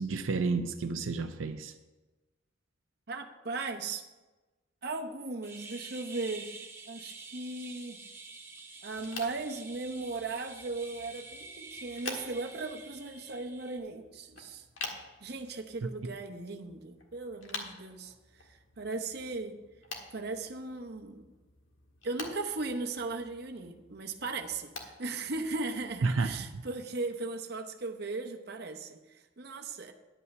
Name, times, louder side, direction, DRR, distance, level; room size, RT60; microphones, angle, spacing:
voice 1, 0.0-1.7 26.0-26.5, right 4 dB, 85° right, 6 dB, 0.5 m, -31 dB
voice 2, 3.1-4.0 4.8-6.5 6.9-8.0 8.8-14.6 15.2-19.6 20.1-21.3 22.0-29.9, right 3 dB, 55° right, 4 dB, 0.8 m, -37 dB
sound 1, 5.4-13.8, right 3 dB, 15° right, 0.7 m, -48 dB
sound 2, 8.9-26.2, left 3 dB, 90° left, 1.6 m, -48 dB
10.5 x 5.6 x 6.8 m, 1.2 s
head